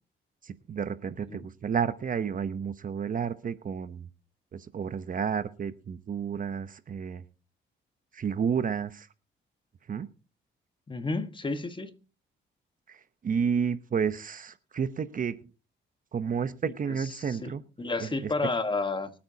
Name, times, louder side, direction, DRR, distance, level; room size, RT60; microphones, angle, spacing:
voice 1, 0.4-4.1 4.5-7.2 8.1-9.1 9.9-10.1 12.9-13.0 13.2-15.4 16.1-17.6 18.0-18.1, right 7 dB, 45° right, 0.9 m, -31 dB
voice 2, 10.9-11.9 16.6-19.1, left 3 dB, 25° left, 1.4 m, -32 dB
24.0 x 8.7 x 2.8 m
cardioid pair, 90°, 20 cm